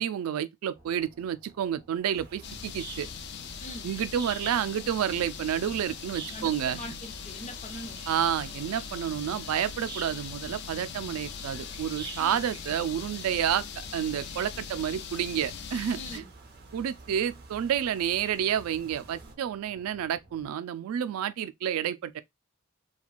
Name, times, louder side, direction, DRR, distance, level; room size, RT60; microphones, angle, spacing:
voice 1, 0.0-3.1 3.8-6.8 8.1-13.6 13.9-16.2 16.7-22.2, right 9 dB, 90° right, 0.3 m, -30 dB
sound 1, 0.7-20.5, right 2 dB, 20° right, 0.9 m, -58 dB
sound 2, 2.0-19.4, right 4 dB, 50° right, 0.6 m, -48 dB
sound 3, 2.4-16.2, left 7 dB, 55° left, 0.3 m, -41 dB
voice 2, 6.3-8.0 12.2-12.4 15.9-16.3, left 1 dB, 35° left, 0.9 m, -42 dB
2.9 x 2.3 x 2.3 m
head